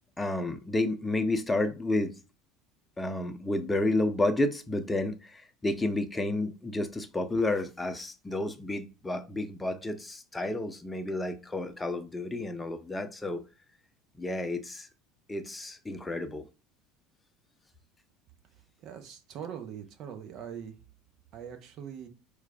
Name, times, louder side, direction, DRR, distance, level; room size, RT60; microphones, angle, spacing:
voice 1, 0.2-2.1 3.0-13.4 14.2-14.9 15.3-16.4, left 2 dB, 15° left, 0.7 m, -31 dB
voice 2, 18.8-20.8 21.3-22.1, right 8 dB, 55° right, 0.9 m, -42 dB
4.8 x 2.5 x 3.3 m
hypercardioid pair, 75°, 0 cm